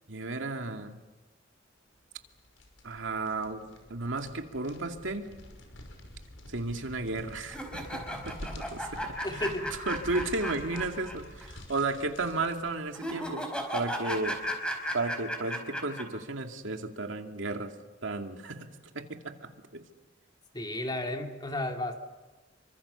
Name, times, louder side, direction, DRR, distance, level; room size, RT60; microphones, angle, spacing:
voice 1, 0.1-1.0 2.8-5.3 6.5-9.2 9.9-13.4 13.7-14.4 14.9-17.7 18.0-18.7 18.9-19.8, right 3 dB, 75° right, 4 dB, 2.4 m, -34 dB
sound 1, 2.1-12.8, left 1 dB, 85° left, 5.6 m, -48 dB
sound 2, 7.5-11.1 11.4-11.5 12.9-16.0, equal, 5° left, 5.0 m, -35 dB
voice 2, 9.2-9.7 20.5-22.0, left 1 dB, 20° left, 3 dB, 2.8 m, -33 dB
29.0 x 25.0 x 7.0 m, 1.2 s
head